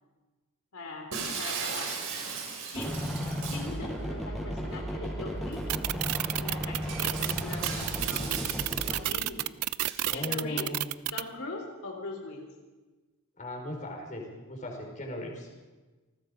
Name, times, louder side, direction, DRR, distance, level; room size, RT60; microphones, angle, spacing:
voice 1, 0.7-1.9 2.7-3.0 3.5-5.6 6.4-8.4 8.9-9.5 10.1-10.7 11.1-12.5, left 2 dB, 75° left, 1 dB, 3.3 m, -41 dB
Shatter, 1.1-3.7 5.5-5.6 6.1-6.2 6.8-9.1 9.9-10.2, right 5 dB, 65° right, 6.3 m, -37 dB
sound 1, 2.7-9.0, equal, ahead, 6.2 m, -34 dB
sound 2, 5.7-11.2, right 14 dB, 80° right, 0.6 m, -30 dB
voice 2, 10.1-11.0 13.4-15.5, left 1 dB, 35° left, 2 dB, 5.0 m, -37 dB
28.0 x 20.0 x 5.2 m, 1.3 s
head